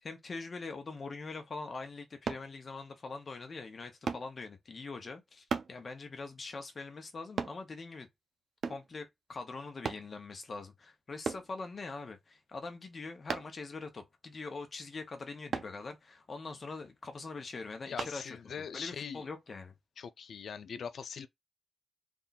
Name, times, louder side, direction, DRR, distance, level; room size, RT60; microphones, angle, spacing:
voice 1, 0.0-8.1 8.6-18.4 18.7-19.7, left 3 dB, 45° left, 0.9 m, -43 dB
sound 1, 2.3-2.5 4.1-4.3 5.5-5.7 7.4-7.6 8.6-8.9 9.8-10.1 11.2-11.5 13.3-13.6 15.5-15.7 18.0-18.2 18.7-18.9, right 5 dB, 70° right, 0.5 m, -35 dB
voice 2, 17.9-19.3 20.0-21.3, left 6 dB, 80° left, 0.3 m, -41 dB
3.6 x 2.3 x 4.0 m
wide cardioid pair, 150°, 0 cm